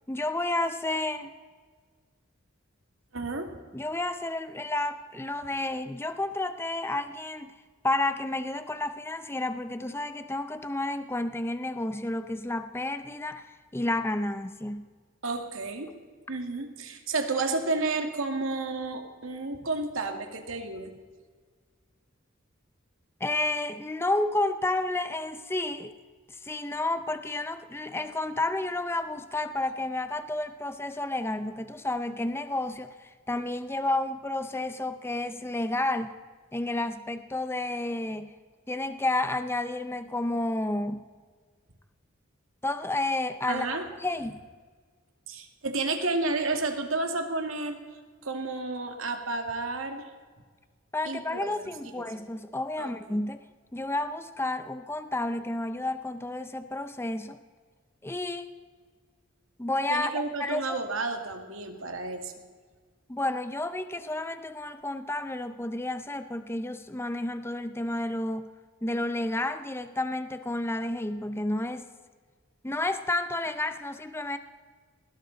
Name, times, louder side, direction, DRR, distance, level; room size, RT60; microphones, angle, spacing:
voice 1, 0.1-1.3 3.7-7.5 7.8-14.9 23.2-25.9 26.3-36.1 36.5-38.3 38.7-41.1 42.6-44.4 50.9-53.4 53.7-57.4 58.0-58.5 59.6-60.1 60.4-60.8 63.1-68.5 68.8-71.9 72.6-74.4, left 2 dB, 10° left, 10 dB, 0.6 m, -31 dB
voice 2, 3.1-3.6 15.2-15.9 16.3-20.9 43.5-43.8 45.3-47.8 48.2-50.1 51.0-51.5 51.9-52.0 52.8-53.2 59.9-62.3, right 3 dB, 90° right, 5 dB, 2.2 m, -31 dB
20.5 x 17.5 x 4.0 m, 1.5 s
head